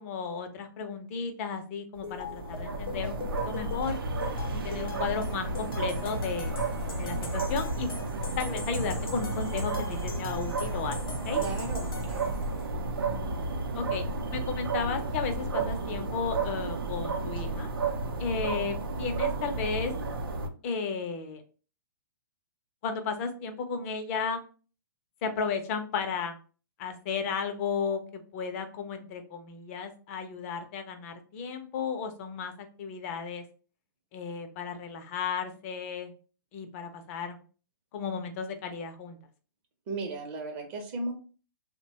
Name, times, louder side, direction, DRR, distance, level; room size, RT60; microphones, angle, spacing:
voice 1, 0.0-4.0 4.5-6.6 7.0-7.9 8.4-11.4 13.7-17.7 18.2-19.9 20.6-21.4 22.8-24.4 25.2-26.4 26.8-33.4 34.1-36.1 36.5-37.4 37.9-39.2, left 5 dB, 40° left, 7 dB, 0.6 m, -34 dB
sound 1, 2.0-12.7, left 5 dB, 75° left, 0.7 m, -43 dB
sound 2, 2.0-20.5, right 3 dB, 80° right, 0.6 m, -32 dB
voice 2, 11.4-12.3 39.9-41.1, right 2 dB, 35° right, 2 dB, 0.7 m, -35 dB
2.9 x 2.2 x 2.8 m, 0.37 s
hypercardioid pair, 130°, 12 cm